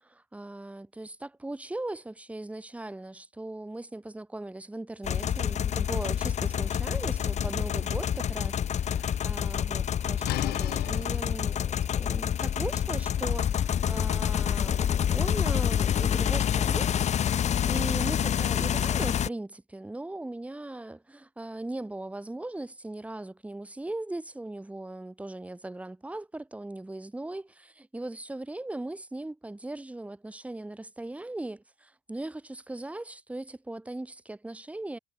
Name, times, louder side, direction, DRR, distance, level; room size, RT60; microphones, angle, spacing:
voice 1, 0.0-16.9 17.3-35.0, right 2 dB, 10° right, 1.4 m, -39 dB
sound 1, 5.0-19.3, left 9 dB, 40° left, 0.8 m, -27 dB
sound 2, 10.2-15.9, left 17 dB, 70° left, 0.4 m, -40 dB
cardioid pair, 110°, 17 cm